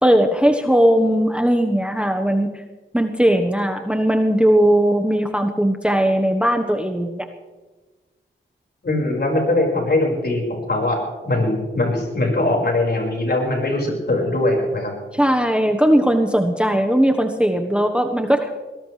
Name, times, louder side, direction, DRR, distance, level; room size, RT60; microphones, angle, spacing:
voice 1, 0.0-2.6 2.9-7.3 15.1-18.6, equal, 5° right, 4 dB, 1.3 m, -18 dB
voice 2, 8.8-14.9, left 2 dB, 55° left, 0 dB, 5.5 m, -21 dB
21.0 x 18.0 x 3.4 m, 1.2 s
cardioid pair, 55°, 20 cm